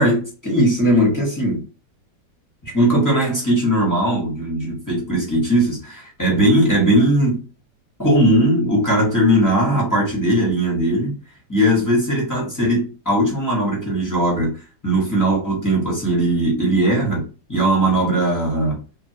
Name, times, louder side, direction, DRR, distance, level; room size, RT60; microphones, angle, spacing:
voice 1, 0.0-1.6 2.6-7.4 8.0-11.2 11.5-17.2 17.5-18.8, right 1 dB, 15° left, 0.7 m, -19 dB
2.7 x 2.5 x 2.7 m
omnidirectional pair, 2.0 m